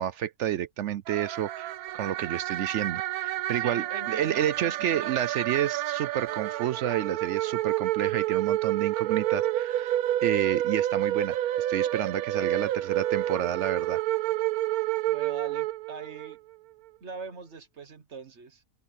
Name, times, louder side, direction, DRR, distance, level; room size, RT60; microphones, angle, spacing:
voice 1, 0.0-10.0 10.2-14.0, right 11 dB, 65° right, 0.8 m, -30 dB
sound 1, 1.1-16.3, right 14 dB, 85° right, 1.1 m, -29 dB
voice 2, 3.5-5.2 12.4-12.7 15.1-16.4 17.0-18.6, right 5 dB, 50° right, 1.5 m, -42 dB
open air
omnidirectional pair, 1.5 m